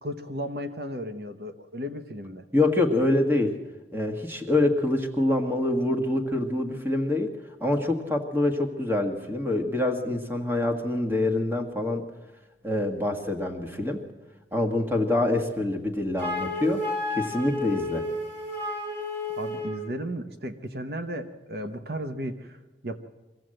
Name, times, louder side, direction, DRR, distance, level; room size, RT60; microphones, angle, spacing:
voice 1, 0.0-2.5 19.3-23.0, equal, 60° right, 8 dB, 1.0 m, -35 dB
voice 2, 2.5-3.6 3.9-7.3 7.6-12.0 12.6-14.0 14.5-18.0, left 2 dB, 10° right, 5 dB, 1.6 m, -25 dB
Wind instrument woodwind instrument, 16.2-19.9, left 1 dB, 85° right, 5.2 m, -32 dB
23.0 x 15.5 x 7.7 m, 1.2 s
head